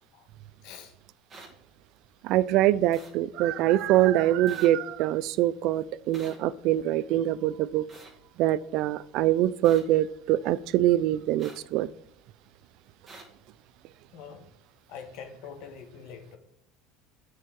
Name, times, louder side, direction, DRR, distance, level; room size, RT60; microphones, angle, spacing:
voice 1, 0.6-0.9 14.1-14.5 14.9-16.4, left 6 dB, 65° left, 1.3 m, -44 dB
sound 1, 1.3-1.5 2.9-3.1 4.5-4.7 6.1-6.4 7.9-8.1 9.6-9.8 11.4-11.6 13.1-13.2, right 3 dB, 25° right, 1.9 m, -47 dB
voice 2, 2.2-7.8 8.4-11.9, right 13 dB, 60° right, 0.3 m, -24 dB
8.4 x 4.7 x 3.6 m
supercardioid pair, 120°, 0 cm